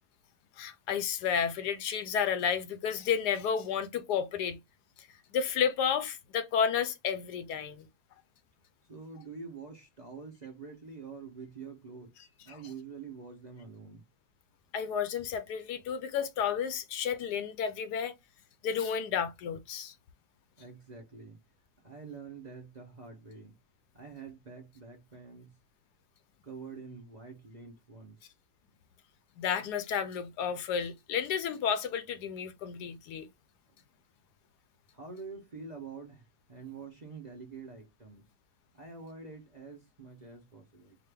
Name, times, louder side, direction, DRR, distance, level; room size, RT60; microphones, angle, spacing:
voice 1, 0.6-4.6 5.3-7.9 12.5-12.6 14.7-18.2 18.6-19.9 29.4-33.3, left 7 dB, 80° left, 1.2 m, -31 dB
voice 2, 8.9-12.1 12.4-14.0 20.6-21.4 21.8-23.6 23.9-25.6 26.4-28.2 34.9-38.2 38.7-41.0, right 5 dB, 35° right, 0.8 m, -46 dB
4.9 x 2.5 x 3.4 m
omnidirectional pair, 1.8 m